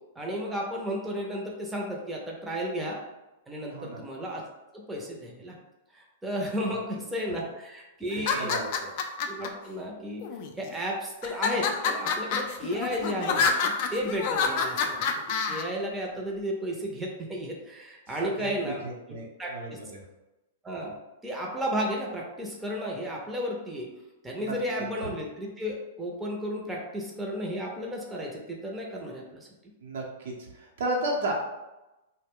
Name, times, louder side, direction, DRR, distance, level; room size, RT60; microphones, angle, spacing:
voice 1, 0.2-3.0 3.5-4.4 4.7-5.6 5.9-8.6 9.3-10.2 10.6-15.0 15.5-18.8 19.4-19.8 20.6-21.0 21.2-23.9 24.2-29.5, equal, 10° right, -2 dB, 0.5 m, -33 dB
voice 2, 3.7-4.0 8.1-8.9 18.2-19.3 19.5-20.0 24.4-24.6 29.8-31.3, right 2 dB, 70° right, -2 dB, 0.7 m, -33 dB
sound 1, 8.1-9.5 10.2-10.8 11.2-15.6, left 5 dB, 55° left, 0.3 m, -27 dB
2.2 x 2.1 x 3.5 m, 1.0 s
hypercardioid pair, 115°, 0 cm